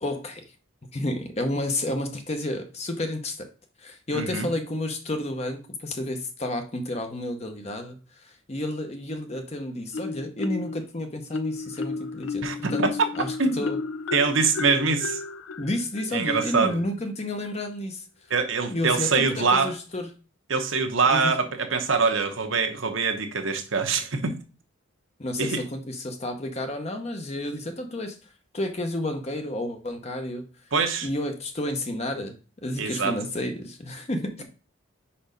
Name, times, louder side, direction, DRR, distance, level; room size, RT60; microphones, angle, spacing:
voice 1, 0.0-0.4 0.9-3.5 3.8-12.8 13.2-13.8 15.6-18.1 18.7-20.1 21.1-21.3 25.2-28.2 28.5-30.4 31.0-32.4 32.6-34.4, left 1 dB, 30° left, 0.8 m, -31 dB
voice 2, 4.1-4.5 12.4-12.9 13.4-13.6 14.1-15.2 16.1-16.8 18.3-19.7 20.5-24.3 25.4-25.6 30.7-31.1 32.8-33.2, right 4 dB, 75° right, 1.1 m, -24 dB
Marimba xylophone, 9.9-10.8 11.3-16.8, left 4 dB, 75° left, 0.5 m, -33 dB
5.3 x 4.3 x 5.1 m
head